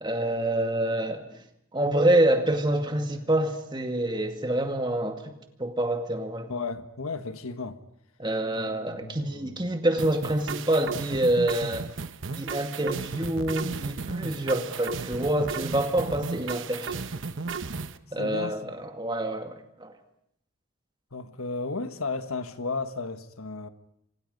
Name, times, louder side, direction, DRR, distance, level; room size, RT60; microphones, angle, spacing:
voice 1, 0.0-1.2 1.7-6.5 8.2-11.9 12.3-17.1 18.1-19.9, right 1 dB, 20° right, 2.1 m, -27 dB
voice 2, 6.5-7.8 8.6-9.6 18.2-18.7 21.1-23.7, left 3 dB, 85° left, 1.5 m, -34 dB
sound 1, 10.0-18.0, right 4 dB, 60° right, 1.0 m, -35 dB
28.5 x 25.5 x 5.4 m
head